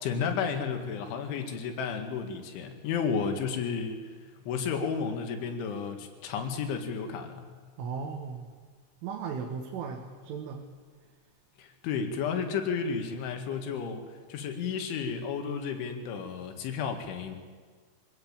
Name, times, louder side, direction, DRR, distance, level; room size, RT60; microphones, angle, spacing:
voice 1, 0.0-4.1 4.5-7.5 11.6-17.4, left 6 dB, 75° left, 6 dB, 4.3 m, -32 dB
voice 2, 7.8-8.5 9.0-10.7, right 6 dB, 85° right, 2 dB, 4.0 m, -36 dB
24.0 x 17.0 x 8.8 m, 1.5 s
omnidirectional pair, 5.5 m